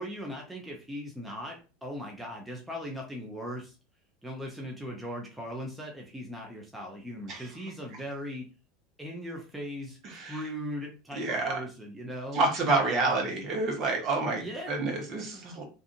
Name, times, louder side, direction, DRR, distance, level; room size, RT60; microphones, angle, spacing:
voice 1, 0.0-3.8 4.2-8.5 9.0-12.4 13.0-13.2 14.4-14.7, equal, 10° right, 0 dB, 0.7 m, -39 dB
voice 2, 10.0-10.4 11.1-11.6 12.3-15.6, right 3 dB, 45° right, 1 dB, 1.0 m, -28 dB
2.6 x 2.5 x 2.5 m, 0.32 s
hypercardioid pair, 100°, 0 cm